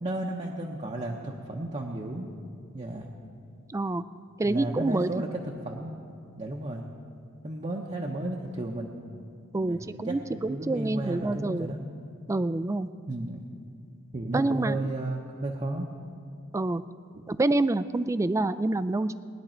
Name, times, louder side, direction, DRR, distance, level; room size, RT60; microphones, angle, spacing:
voice 1, 0.0-2.3 2.7-3.1 4.4-5.9 6.4-6.8 7.4-8.9 9.6-11.8 13.1-13.4 14.1-15.9, right 2 dB, 30° right, -1 dB, 0.8 m, -33 dB
voice 2, 3.7-4.0 4.4-5.1 9.5-11.7 12.3-12.9 14.3-14.9 16.5-16.8 17.3-19.2, right 2 dB, 15° right, 13 dB, 0.3 m, -27 dB
20.0 x 10.5 x 4.4 m, 2.4 s
head